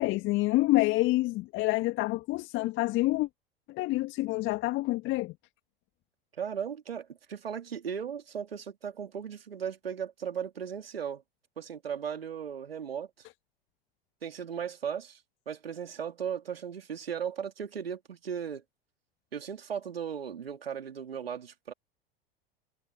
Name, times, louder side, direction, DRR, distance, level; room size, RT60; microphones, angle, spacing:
voice 1, 0.0-3.3 3.7-5.3, left 19 dB, 40° left, 1.8 m, -27 dB
voice 2, 6.4-11.2 11.6-13.1 14.2-15.2 15.5-18.6 19.3-21.7, right 8 dB, 75° right, 3.4 m, -36 dB
figure-of-eight pair, 85°, 30 cm